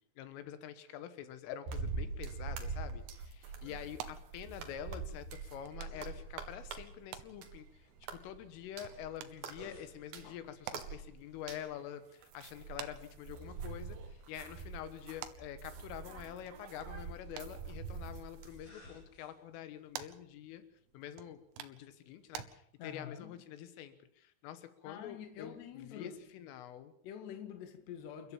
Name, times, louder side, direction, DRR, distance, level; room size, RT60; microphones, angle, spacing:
voice 1, 0.2-7.8 8.1-20.6 20.9-26.9, left 10 dB, 85° left, 3.8 m, -47 dB
sound 1, 1.7-7.7 8.0-11.7 12.2-18.7, right 5 dB, 55° right, 3.4 m, -44 dB
sound 2, 2.6-22.5, right 12 dB, 85° right, 3.7 m, -53 dB
sound 3, 3.2-21.5, left 1 dB, 30° left, 8.1 m, -64 dB
voice 2, 22.8-23.4 24.9-26.2 27.0-28.3, left 8 dB, 65° left, 3.9 m, -46 dB
29.0 x 13.0 x 7.3 m
omnidirectional pair, 5.6 m